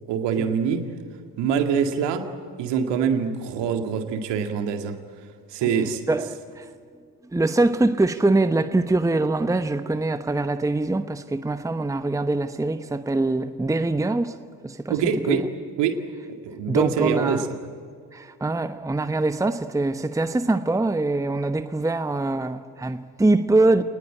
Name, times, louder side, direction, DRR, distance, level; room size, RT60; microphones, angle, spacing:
voice 1, 0.1-0.8 1.4-2.3 2.6-5.0 5.5-6.0 14.9-15.4 15.8-16.0 16.4-17.4, right 7 dB, 60° right, 2.1 m, -24 dB
voice 2, 6.1-6.7 7.2-14.4 14.6-14.9 15.3-15.4 16.7-17.4 18.1-23.8, right 2 dB, 5° right, 1.0 m, -23 dB
28.5 x 19.5 x 8.7 m
figure-of-eight pair, 45°, 47 cm